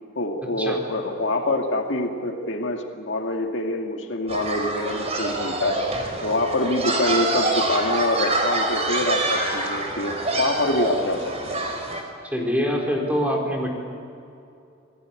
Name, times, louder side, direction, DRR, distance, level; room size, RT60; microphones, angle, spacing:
voice 1, 0.2-5.8 6.2-11.6, left 2 dB, 65° left, 3 dB, 2.2 m, -25 dB
sound 1, 4.3-12.0, right 2 dB, 35° right, 4.0 m, -26 dB
voice 2, 12.2-13.7, equal, 10° right, 0 dB, 4.3 m, -24 dB
27.5 x 19.0 x 8.9 m, 2.6 s
head